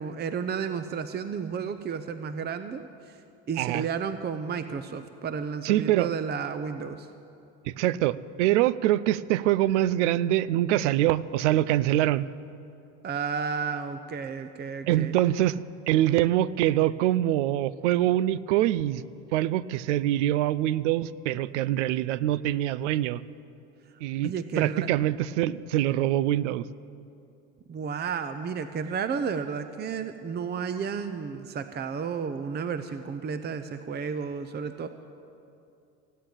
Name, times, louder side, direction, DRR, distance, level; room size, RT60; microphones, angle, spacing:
voice 1, 0.0-3.2 3.5-7.1 13.0-15.1 24.2-24.8 27.7-34.9, right 6 dB, 30° right, 10 dB, 0.7 m, -32 dB
voice 2, 5.6-6.1 7.6-12.3 14.9-19.0 19.3-23.2 24.0-26.6, right 13 dB, 85° right, 19 dB, 0.5 m, -24 dB
16.5 x 9.0 x 8.8 m, 2.6 s
supercardioid pair, 85°, 35 cm